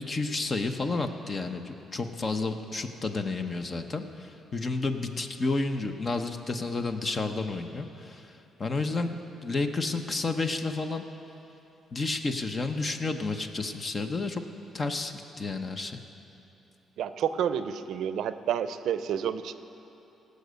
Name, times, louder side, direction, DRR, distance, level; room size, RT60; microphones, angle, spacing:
voice 1, 0.1-8.3 8.6-11.0 11.9-14.4 14.7-16.0, left 3 dB, 35° left, 7 dB, 0.9 m, -31 dB
voice 2, 17.0-19.5, right 9 dB, 75° right, 12 dB, 0.5 m, -29 dB
17.0 x 6.6 x 8.2 m, 3.0 s
cardioid pair, 90°, 0 cm